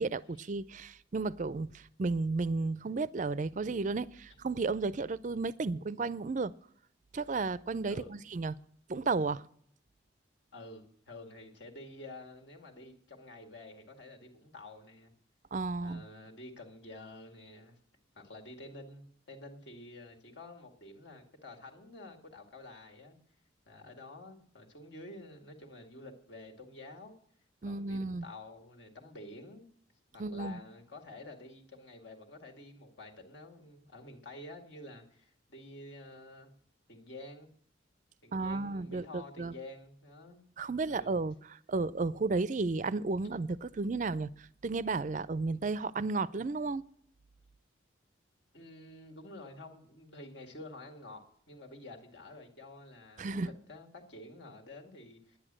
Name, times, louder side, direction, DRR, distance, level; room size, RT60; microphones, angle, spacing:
voice 1, 0.0-6.5 7.1-8.5 8.9-9.4 15.5-16.0 27.6-28.2 30.2-30.6 38.3-39.5 40.6-46.8 53.2-53.5, right 3 dB, 40° right, 0.4 m, -33 dB
voice 2, 10.5-15.1 15.8-17.8 18.2-23.2 23.7-27.1 27.7-29.7 30.1-36.5 36.9-37.5 38.2-40.4 40.8-41.1 48.5-55.4, left 2 dB, 60° left, 2.1 m, -49 dB
10.5 x 10.0 x 7.5 m
head